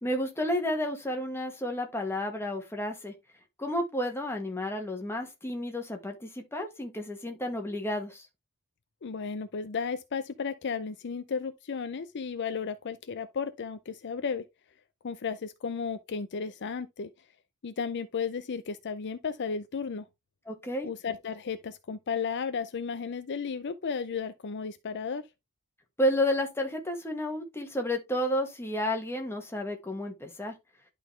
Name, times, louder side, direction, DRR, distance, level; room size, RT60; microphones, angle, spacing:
voice 1, 0.0-3.1 3.6-8.3 20.5-20.9 26.0-30.5, left 1 dB, 10° left, 1.5 m, -31 dB
voice 2, 9.0-14.4 15.0-17.1 17.6-20.0 20.8-25.2, left 5 dB, 55° left, 0.5 m, -34 dB
11.0 x 4.0 x 3.2 m
head